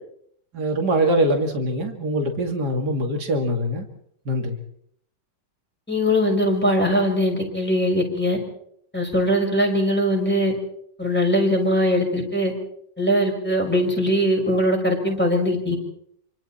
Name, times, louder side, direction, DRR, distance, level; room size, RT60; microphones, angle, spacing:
voice 1, 0.5-3.9 4.3-4.6, right 1 dB, 70° right, 4 dB, 3.0 m, -23 dB
voice 2, 5.9-8.4 8.9-10.5 11.0-12.5 13.0-15.8, equal, 5° left, 0 dB, 6.1 m, -21 dB
27.0 x 26.0 x 4.4 m, 0.68 s
omnidirectional pair, 1.8 m